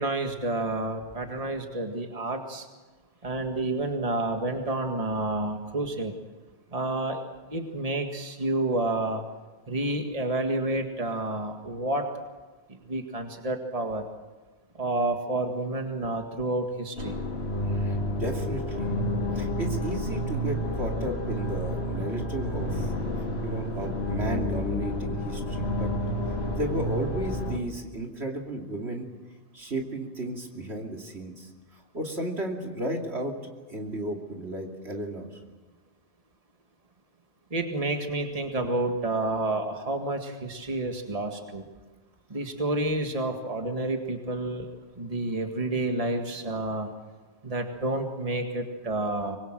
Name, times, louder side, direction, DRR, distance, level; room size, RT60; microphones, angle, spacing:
voice 1, 0.0-2.7 3.2-6.1 6.7-7.2 7.5-9.2 9.7-12.1 12.9-14.1 14.8-17.2 37.5-41.6 42.3-44.7 45.0-46.9 47.4-49.4, right 2 dB, 30° right, 4 dB, 2.0 m, -29 dB
sound 1, 17.0-27.6, left 1 dB, 65° left, 2.6 m, -30 dB
voice 2, 17.7-18.9 19.3-22.9 23.4-25.9 26.5-29.1 29.5-31.5 31.9-33.4 33.7-35.3, right 1 dB, 70° right, 1 dB, 3.0 m, -33 dB
25.0 x 21.0 x 7.7 m, 1.2 s
omnidirectional pair, 1.1 m